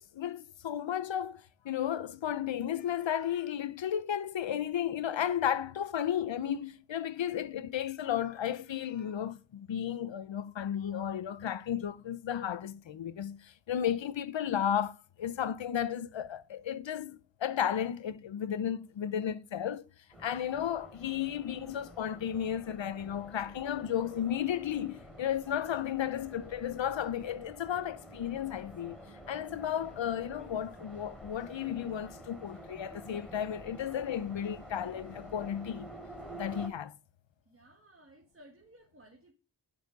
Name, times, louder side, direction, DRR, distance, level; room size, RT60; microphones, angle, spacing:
voice 1, 0.0-19.8 20.2-29.0 29.3-35.9 36.3-36.9, left 9 dB, 85° left, 0.7 m, -34 dB
sound 1, 20.1-36.7, right 1 dB, ahead, 5.2 m, -49 dB
voice 2, 37.5-39.3, right 1 dB, 30° right, 1.8 m, -58 dB
9.3 x 6.9 x 5.2 m
wide cardioid pair, 70°, 44 cm